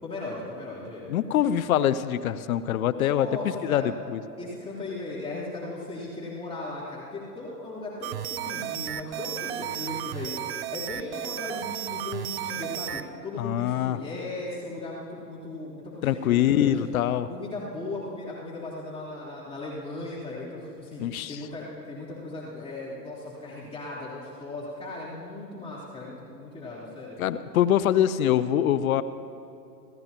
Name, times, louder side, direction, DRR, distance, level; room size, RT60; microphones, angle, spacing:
voice 1, 0.0-1.0 2.9-3.9 4.4-16.7 17.3-27.2, left 2 dB, 10° left, -9 dB, 3.5 m, -37 dB
voice 2, 1.1-4.2 13.4-14.0 16.0-17.3 21.0-21.4 27.2-29.0, left 11 dB, 60° left, 15 dB, 0.7 m, -24 dB
sound 1, 8.0-13.1, right 11 dB, 40° right, 0.5 m, -34 dB
28.5 x 15.0 x 3.0 m, 2.6 s
hypercardioid pair, 105°, 49 cm